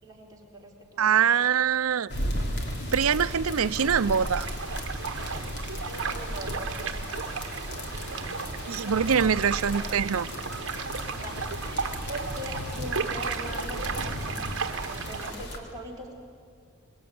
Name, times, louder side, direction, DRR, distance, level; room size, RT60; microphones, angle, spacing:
voice 1, 0.0-1.6 5.9-7.2 7.9-8.4 8.8-8.9 9.2-9.6 11.1-14.5 14.9-16.1, right 1 dB, 15° right, -3 dB, 4.4 m, -42 dB
voice 2, 1.0-2.1 2.9-4.5 8.7-10.3, right 7 dB, 75° right, 12 dB, 0.6 m, -24 dB
sound 1, 2.1-15.6, equal, 55° left, 3.4 m, -35 dB
sound 2, 3.7-15.3, right 5 dB, 60° right, 1.2 m, -35 dB
27.0 x 21.0 x 9.4 m, 2.2 s
head